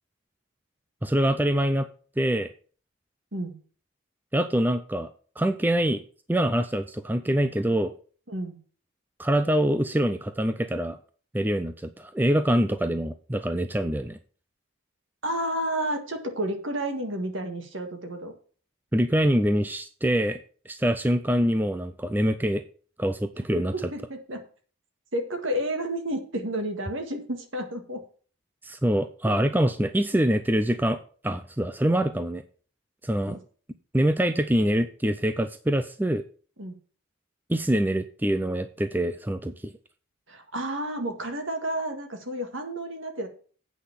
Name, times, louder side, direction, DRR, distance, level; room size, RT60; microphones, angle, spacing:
voice 1, 1.0-1.9 2.2-2.5 4.3-5.1 5.4-6.0 6.3-7.9 9.2-11.0 11.3-14.2 18.9-20.4 20.7-22.6 23.0-23.7 28.6-31.0 31.2-32.4 33.0-33.4 33.9-36.2 37.5-39.7, right 1 dB, 10° right, 9 dB, 0.4 m, -24 dB
voice 2, 8.3-8.6 15.2-18.3 23.5-24.4 25.1-28.0 33.3-33.4 36.6-36.8 40.3-43.3, right 1 dB, 65° right, 5 dB, 1.9 m, -31 dB
8.4 x 5.8 x 7.2 m, 0.42 s
head